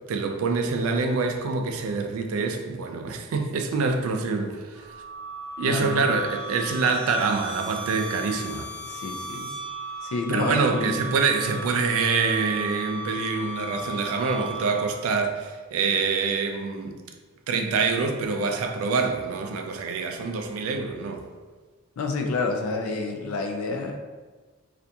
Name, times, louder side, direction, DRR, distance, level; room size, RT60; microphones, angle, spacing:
voice 1, 0.1-4.9 5.6-8.7 10.3-17.0 17.5-21.2, right 4 dB, 80° right, 5 dB, 0.3 m, -26 dB
sound 1, 4.7-15.1, right 2 dB, 25° left, 0.5 m, -36 dB
voice 2, 5.6-6.0 8.8-9.6 10.0-11.0 22.0-24.0, left 3 dB, 80° left, 3 dB, 0.4 m, -29 dB
2.5 x 2.2 x 2.7 m, 1.4 s
head